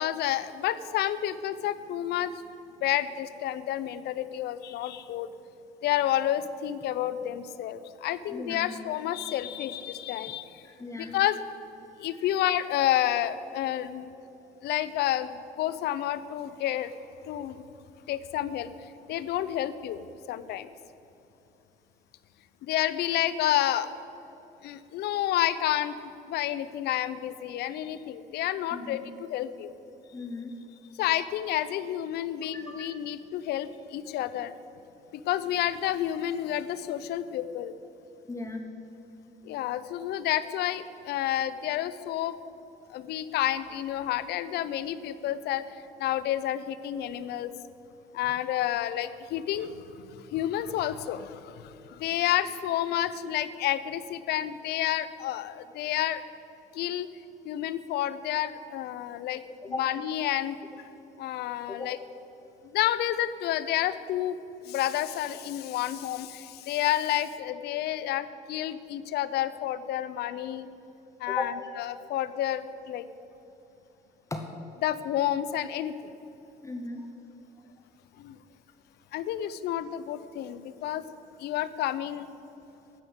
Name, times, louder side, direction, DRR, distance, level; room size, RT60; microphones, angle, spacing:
voice 1, 0.0-2.3 2.8-5.3 5.8-10.7 10.9-11.4 12.0-14.1 14.6-16.9 17.3-17.6 18.1-18.7 19.1-20.7 22.6-23.9 24.6-29.7 31.0-34.5 35.1-37.7 39.4-42.4 42.9-45.6 46.0-47.5 48.1-56.2 56.7-57.1 57.4-59.4 59.8-60.6 61.2-62.0 62.7-64.4 64.6-70.7 71.2-73.1 74.8-76.1 78.2-78.4 79.1-81.0 81.4-82.3, left 12 dB, 75° left, 15 dB, 0.6 m, -30 dB
voice 2, 8.3-8.7 10.6-11.2 28.7-29.0 30.1-30.5 32.5-32.9 38.3-38.7 59.6-59.9 61.6-61.9 71.3-71.7 74.3-74.5 76.6-77.1, left 2 dB, 20° left, 4 dB, 1.0 m, -37 dB
12.0 x 8.1 x 7.9 m, 2.9 s
cardioid pair, 110°, 17 cm